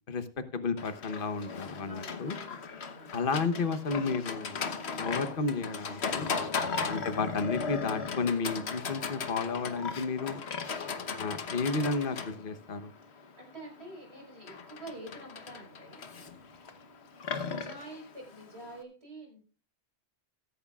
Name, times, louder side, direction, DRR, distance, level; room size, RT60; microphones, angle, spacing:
voice 1, 0.5-2.4 3.1-4.7 5.0-6.3 6.9-10.4 11.2-12.9, left 4 dB, 55° left, 10 dB, 1.2 m, -32 dB
Livestock farm animals working animals, 0.8-18.8, left 5 dB, 85° left, 1.3 m, -37 dB
voice 2, 1.9-3.2 13.0-16.0 17.3-19.4, right 1 dB, 75° right, 0 dB, 4.9 m, -47 dB
15.0 x 14.0 x 2.4 m, 0.38 s
omnidirectional pair, 1.1 m